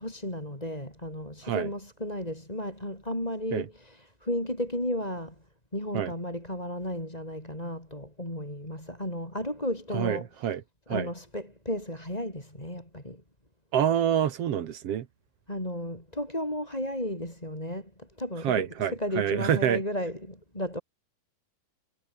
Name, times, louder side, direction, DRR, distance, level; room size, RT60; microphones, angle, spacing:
voice 1, 0.0-5.3 5.7-10.3 10.9-13.2 15.5-18.7 18.9-20.8, left 1 dB, 10° left, 7.5 m, -34 dB
voice 2, 9.9-10.6 10.9-11.1 13.7-15.1 18.4-19.8, right 9 dB, 60° right, 1.7 m, -27 dB
omnidirectional pair, 4.3 m